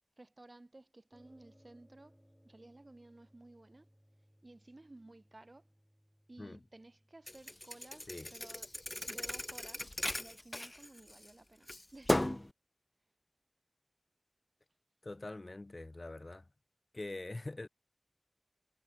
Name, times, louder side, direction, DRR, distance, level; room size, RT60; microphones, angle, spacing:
voice 1, 0.2-2.2 2.4-3.9 4.4-5.7 6.3-8.7 9.1-9.9 10.1-12.2, right 2 dB, 70° right, 1.7 m, -56 dB
sound 1, 1.1-10.2, equal, 5° right, 3.9 m, -68 dB
Thump thud, 7.3-11.3 11.7-12.5, left 1 dB, 40° left, 0.3 m, -36 dB
voice 2, 15.0-16.5 16.9-17.7, left 2 dB, 70° left, 1.2 m, -44 dB
wide cardioid pair, 45°, 0 cm